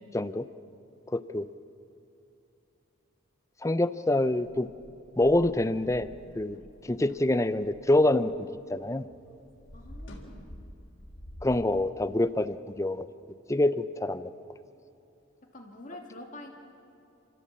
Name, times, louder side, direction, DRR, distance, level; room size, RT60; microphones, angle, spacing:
voice 1, 0.1-0.5 1.1-1.5 3.6-4.7 5.2-6.1 6.4-6.6 6.8-8.3 8.7-9.1 11.4-13.1 13.5-14.3, left 1 dB, 15° left, 14 dB, 0.5 m, -26 dB
sound 1, 4.4-8.9 9.1-11.7, equal, 60° left, 3.4 m, -48 dB
voice 2, 9.7-10.6 15.5-16.5, left 1 dB, 40° left, 2 dB, 2.3 m, -46 dB
29.5 x 13.5 x 7.5 m, 2.7 s
head